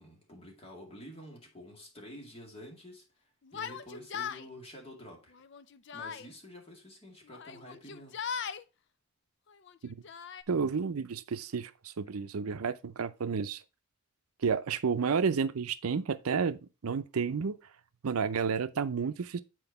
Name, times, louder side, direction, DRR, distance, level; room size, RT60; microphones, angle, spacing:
voice 1, 0.0-3.0 3.5-5.3 5.9-8.3, equal, 25° left, 2.1 m, -49 dB
Yell, 3.4-4.5 5.3-6.3 7.3-8.6 9.5-10.4, left 7 dB, 55° left, 0.4 m, -39 dB
voice 2, 10.5-13.6 14.4-17.6 18.0-19.4, right 5 dB, 85° right, 0.5 m, -31 dB
7.9 x 4.5 x 4.0 m
head